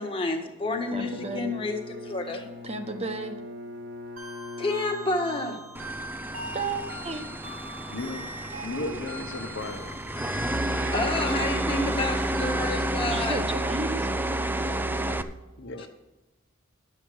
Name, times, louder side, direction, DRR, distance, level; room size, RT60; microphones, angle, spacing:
voice 1, 0.0-2.5 4.6-5.6 10.9-13.4 15.8-15.9, left 2 dB, 25° left, 2 dB, 1.6 m, -29 dB
Bowed string instrument, 0.6-6.1, left 3 dB, 55° right, 1.1 m, -41 dB
voice 2, 0.9-1.5 2.6-3.4 6.5-7.2 13.0-14.1, right 3 dB, 30° right, 6 dB, 1.2 m, -33 dB
sound 1, 4.2-12.9, right 1 dB, 80° right, 3.2 m, -40 dB
sound 2, 5.7-15.2, right 1 dB, 10° right, 0.5 m, -30 dB
voice 3, 7.9-8.3 8.6-9.9 15.6-15.9, left 2 dB, 65° left, 7 dB, 1.1 m, -35 dB
11.5 x 7.4 x 6.3 m, 1.0 s
head